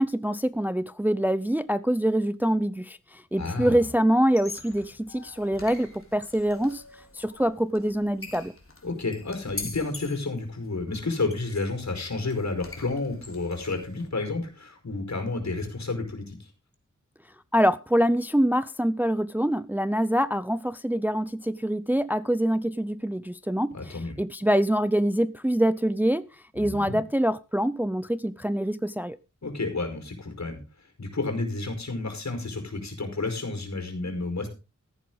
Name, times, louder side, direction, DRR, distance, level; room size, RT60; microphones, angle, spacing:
voice 1, 0.0-6.8 7.1-8.5 17.5-26.3 26.5-29.2, equal, 5° right, 0.5 m, -25 dB
voice 2, 3.4-3.8 8.8-16.4 23.7-24.2 26.6-27.0 29.4-30.6 31.0-34.5, left 3 dB, 65° left, 5.2 m, -31 dB
sound 1, 4.2-14.1, left 2 dB, 45° left, 3.6 m, -44 dB
14.0 x 11.0 x 4.0 m
wide cardioid pair, 60°, 31 cm